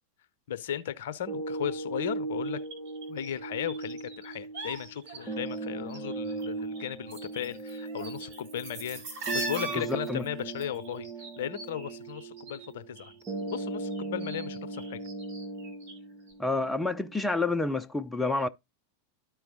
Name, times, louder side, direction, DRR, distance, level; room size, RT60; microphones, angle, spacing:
voice 1, 0.5-2.6 3.1-11.1 11.4-13.1 13.5-15.0, left 10 dB, 55° left, 0.6 m, -36 dB
sound 1, 1.3-17.3, right 3 dB, 15° right, 1.4 m, -38 dB
sound 2, 2.4-5.2 5.5-6.5 6.7-12.7 13.0-16.0 16.3-16.4, right 2 dB, 50° right, 2.6 m, -41 dB
sound 3, 4.3-6.8 7.1-11.5 11.9-12.1 12.5-13.0, right 2 dB, 80° right, 2.3 m, -52 dB
voice 2, 9.7-10.2 16.4-18.5, left 3 dB, 5° left, 0.4 m, -29 dB
12.5 x 4.5 x 2.6 m
figure-of-eight pair, 90°, 0 cm